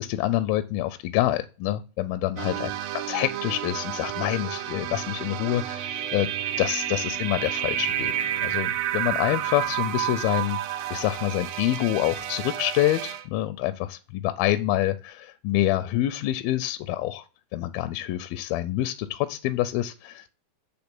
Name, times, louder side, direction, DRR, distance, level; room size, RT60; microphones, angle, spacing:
voice 1, 0.0-6.3 6.6-17.3 17.5-20.3, left 14 dB, 85° left, 2.3 m, -27 dB
sound 1, 2.4-13.3, right 12 dB, 90° right, 2.6 m, -30 dB
8.7 x 3.5 x 6.0 m
omnidirectional pair, 4.3 m